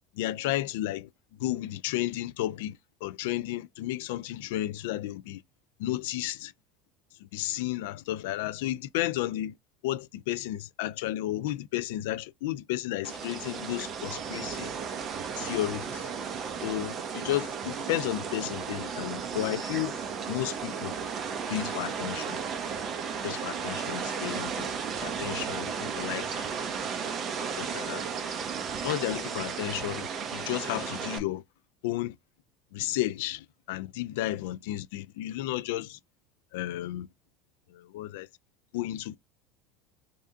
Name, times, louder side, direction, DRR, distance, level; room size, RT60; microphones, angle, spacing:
voice 1, 0.2-1.1 1.4-5.4 5.8-6.5 7.3-9.6 9.8-14.7 15.4-16.1 16.6-20.0 20.3-21.0 21.5-22.4 23.2-24.7 25.0-26.7 27.6-28.0 28.5-31.4 31.8-32.2 32.7-36.0 36.5-37.1 37.7-38.3 38.7-39.2, left 14 dB, 85° left, 0.3 m, -33 dB
sound 1, 13.0-31.2, right 6 dB, 30° right, 0.7 m, -34 dB
3.3 x 2.7 x 3.5 m
cardioid pair, 165°, 0 cm